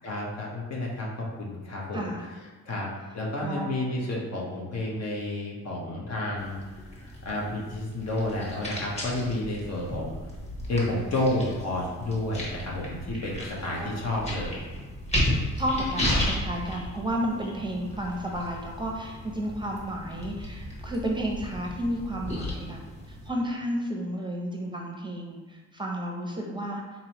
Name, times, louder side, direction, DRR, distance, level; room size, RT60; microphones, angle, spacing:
voice 1, 0.0-2.0 2.6-6.6 6.9-10.1 10.7-14.6, left 1 dB, 60° left, -3 dB, 1.0 m, -30 dB
voice 2, 1.9-2.3 2.7-2.8 3.4-3.7 9.6-9.7 13.7-13.9 15.5-22.8 23.1-26.8, equal, 15° right, 0 dB, 0.6 m, -32 dB
sound 1, 6.4-23.3, left 1 dB, 20° left, 1.2 m, -34 dB
4.0 x 3.0 x 2.9 m, 1.2 s
cardioid pair, 90°, 30 cm